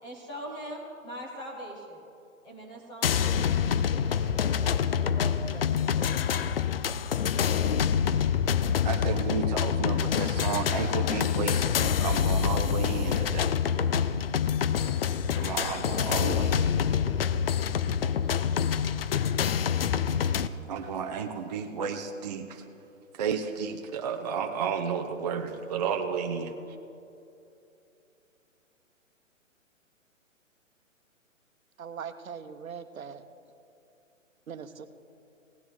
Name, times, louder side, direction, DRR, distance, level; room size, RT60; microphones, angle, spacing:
voice 1, 0.0-2.0 2.4-6.3 16.9-17.4 18.2-18.6, equal, 10° left, -2 dB, 0.9 m, -43 dB
sound 1, 3.0-20.5, left 7 dB, 45° left, 0.4 m, -26 dB
voice 2, 8.8-13.5 15.4-16.7 20.7-22.6 23.2-26.5, right 6 dB, 30° right, 4 dB, 0.5 m, -32 dB
voice 3, 31.8-33.2 34.5-34.9, right 7 dB, 80° right, 11 dB, 1.0 m, -40 dB
16.5 x 9.9 x 4.6 m, 2.7 s
hypercardioid pair, 140°, 40 cm